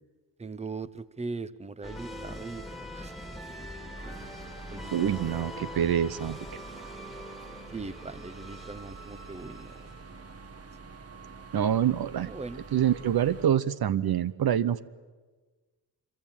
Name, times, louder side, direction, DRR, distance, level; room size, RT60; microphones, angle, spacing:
voice 1, 0.4-3.2 3.5-4.2 4.7-5.1 5.6-5.7 7.7-9.7 12.2-12.6, right 3 dB, 15° right, 15 dB, 0.8 m, -40 dB
sound 1, 1.8-10.2, left 1 dB, ahead, 2.3 m, -43 dB
sound 2, 4.0-13.5, right 4 dB, 40° right, 1.6 m, -47 dB
voice 2, 4.9-6.4 11.5-12.3 12.7-14.8, right 9 dB, 65° right, 15 dB, 0.9 m, -26 dB
25.5 x 23.0 x 8.9 m, 1.3 s
cardioid pair, 85°, 39 cm